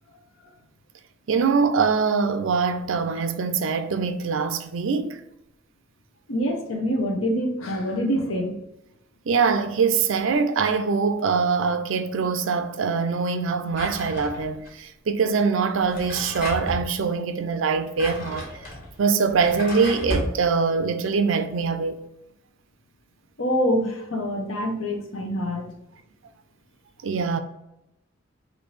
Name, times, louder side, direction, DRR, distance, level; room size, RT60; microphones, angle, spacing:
voice 1, 1.3-5.2 9.3-18.5 19.0-22.0 27.0-27.4, right 5 dB, 80° right, 0.4 m, -23 dB
voice 2, 6.3-8.6 23.4-25.7, equal, 85° left, 0.9 m, -25 dB
Drawer open or close, 13.7-14.7 15.7-16.9 17.7-20.4, left 1 dB, 45° left, 1.4 m, -33 dB
4.3 x 2.7 x 3.1 m
head